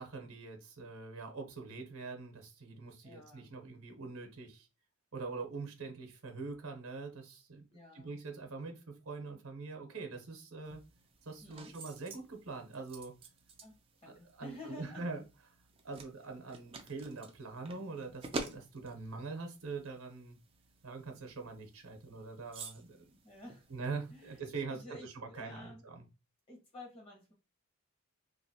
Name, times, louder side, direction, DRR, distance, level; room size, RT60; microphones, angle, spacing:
voice 1, 0.0-4.7 5.1-7.6 7.9-10.8 11.2-13.1 14.1-15.2 15.8-20.4 20.8-23.2 23.7-26.0, right 4 dB, 75° right, 0.8 m, -44 dB
voice 2, 3.0-3.5 7.7-8.1 11.4-11.8 13.6-15.1 15.8-16.0 23.2-23.7 24.1-25.8 26.5-27.3, left 1 dB, 25° left, 1.1 m, -51 dB
sound 1, 10.6-24.4, right 3 dB, 25° right, 0.4 m, -50 dB
3.0 x 2.5 x 2.7 m
head